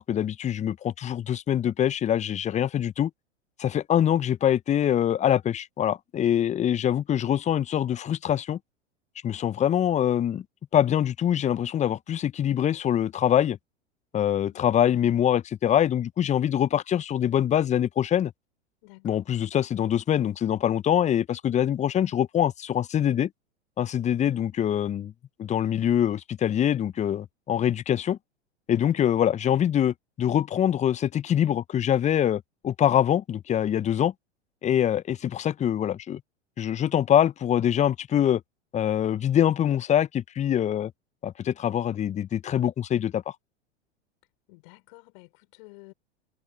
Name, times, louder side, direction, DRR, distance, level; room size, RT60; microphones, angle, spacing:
voice 1, 0.0-3.1 3.6-8.6 9.2-10.4 10.7-13.6 14.1-18.3 19.0-23.3 23.8-25.1 25.4-28.2 28.7-34.1 34.6-36.2 36.6-38.4 38.7-40.9 41.2-43.3, left 10 dB, 20° left, 0.9 m, -24 dB
voice 2, 14.3-14.7 18.8-19.2 24.0-24.1 28.7-29.0 44.5-45.9, left 29 dB, 50° left, 6.5 m, -52 dB
figure-of-eight pair, 90°, 34 cm